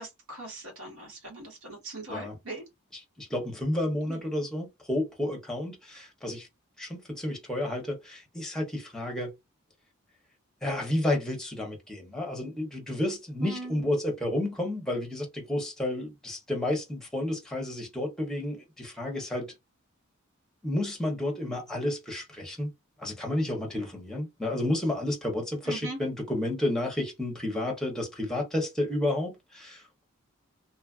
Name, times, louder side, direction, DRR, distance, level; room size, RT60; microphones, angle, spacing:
voice 1, 0.0-2.6 4.1-4.2 13.4-13.8 25.6-26.0, right 2 dB, 90° right, 1.5 m, -40 dB
voice 2, 3.2-6.5 6.8-9.3 10.6-19.5 20.6-22.7 23.0-30.1, left 1 dB, ahead, 0.7 m, -31 dB
2.9 x 2.4 x 2.3 m
head